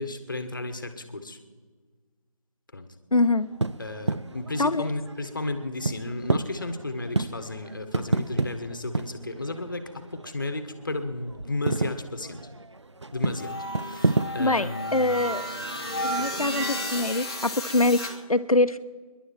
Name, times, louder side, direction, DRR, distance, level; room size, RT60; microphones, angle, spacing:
voice 1, 0.0-1.4 2.7-2.9 3.8-12.4 13.1-15.3 16.2-16.4, left 2 dB, 35° left, 9 dB, 1.4 m, -34 dB
voice 2, 3.1-3.5 4.6-4.9 14.4-15.5 16.0-18.8, left 2 dB, 75° left, 12 dB, 1.0 m, -24 dB
sound 1, 3.4-10.9 11.1-14.5, right 3 dB, 50° right, 0.6 m, -30 dB
sound 2, 13.3-18.1, equal, 10° left, 1.1 m, -33 dB
27.5 x 11.5 x 4.5 m, 1.5 s
figure-of-eight pair, 165°, 19 cm